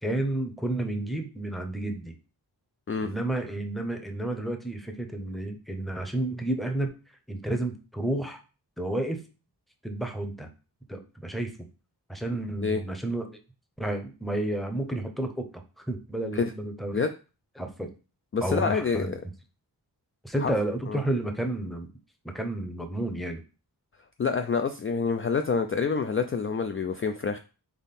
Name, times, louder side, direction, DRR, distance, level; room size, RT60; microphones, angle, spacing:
voice 1, 0.0-2.1 3.0-6.9 7.3-8.4 8.8-9.2 9.8-10.5 10.9-11.5 12.1-13.3 13.8-17.0 17.6-17.9 18.4-19.1 20.2-21.9 22.2-23.4, right 1 dB, ahead, 5 dB, 0.7 m, -31 dB
voice 2, 18.3-19.2 20.4-20.5 20.9-21.0 24.2-27.4, left 5 dB, 35° left, 7 dB, 0.4 m, -27 dB
3.6 x 3.5 x 4.1 m, 0.33 s
wide cardioid pair, 85°, 40 cm